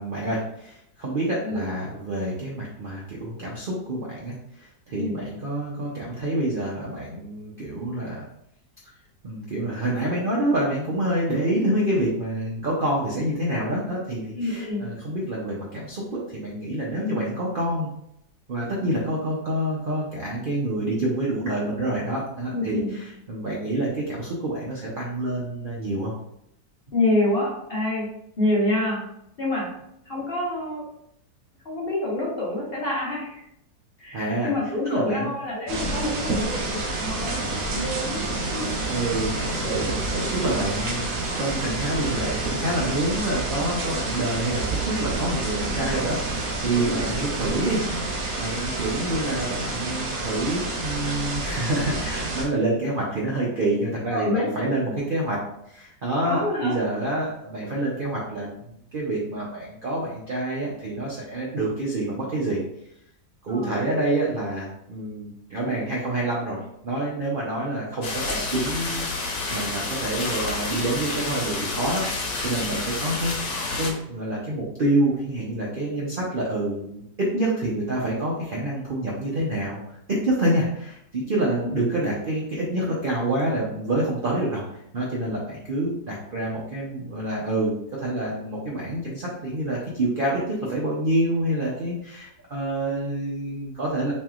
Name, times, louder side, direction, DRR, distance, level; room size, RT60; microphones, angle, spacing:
voice 1, 0.0-8.3 9.2-17.9 18.5-26.1 34.1-34.5 34.8-35.3 38.9-62.6 63.4-79.8 80.1-84.6 84.9-94.1, right 1 dB, 80° right, -4 dB, 0.4 m, -27 dB
voice 2, 14.3-14.8 22.5-22.9 26.9-28.1 28.4-29.0 29.4-29.7 30.0-30.8 31.6-33.4 34.0-38.7 45.9-46.2 46.7-47.1 54.1-54.5 56.2-56.8 63.5-63.8 81.5-81.7, left 2 dB, 40° left, -5 dB, 1.0 m, -27 dB
sound 1, 35.7-52.4, right 2 dB, 55° right, 1.0 m, -28 dB
sound 2, 68.0-73.9, left 3 dB, 75° left, 1.4 m, -29 dB
4.4 x 3.2 x 2.4 m, 0.77 s
omnidirectional pair, 1.9 m